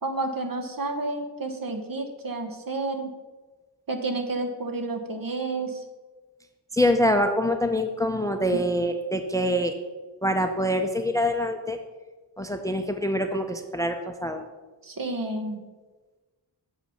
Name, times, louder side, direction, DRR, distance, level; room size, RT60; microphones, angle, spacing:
voice 1, 0.0-3.1 3.9-5.8 14.8-15.6, right 2 dB, 50° right, 5 dB, 1.1 m, -30 dB
voice 2, 6.7-9.7 10.2-11.8 12.4-14.4, equal, 10° left, 7 dB, 0.5 m, -25 dB
7.6 x 5.6 x 5.7 m, 1.3 s
wide cardioid pair, 95°, 43 cm